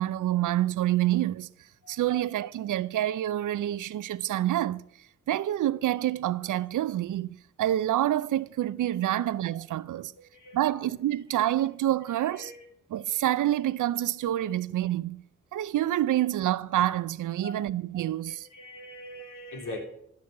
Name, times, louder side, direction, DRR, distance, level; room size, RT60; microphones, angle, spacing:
voice 1, 0.0-1.5 1.9-4.8 5.3-10.1 10.5-12.5 12.9-15.2 15.5-18.5, right 13 dB, 85° right, 0.6 m, -27 dB
voice 2, 1.8-2.4 10.2-10.8 12.1-12.6 17.4-17.6 18.2-19.8, left 1 dB, 85° left, 2.9 m, -43 dB
14.0 x 6.3 x 8.6 m
cardioid pair, 50°, 30 cm